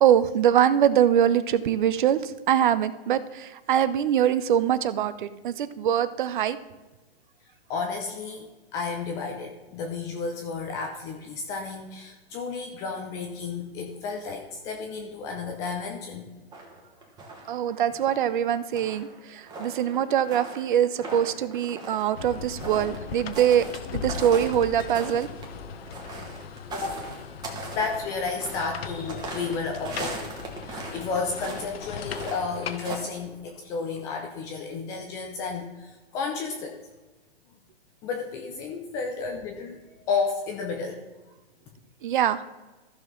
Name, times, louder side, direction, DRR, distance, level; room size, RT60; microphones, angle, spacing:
voice 1, 0.0-6.6 17.5-23.6 23.9-25.3 42.0-42.4, right 10 dB, 50° right, 14 dB, 0.6 m, -23 dB
voice 2, 7.7-16.3 26.7-27.0 27.7-30.3 30.6-36.8 38.0-41.0, left 4 dB, 10° left, 2 dB, 0.4 m, -32 dB
sound 1, 16.5-17.6 17.9-23.8 24.0-31.1 31.3-31.7 32.0-33.0, right 2 dB, 10° right, 1.4 m, -39 dB
sound 2, 22.1-33.6, left 7 dB, 65° left, 0.9 m, -39 dB
14.0 x 5.9 x 3.7 m, 1.2 s
hypercardioid pair, 140°, 32 cm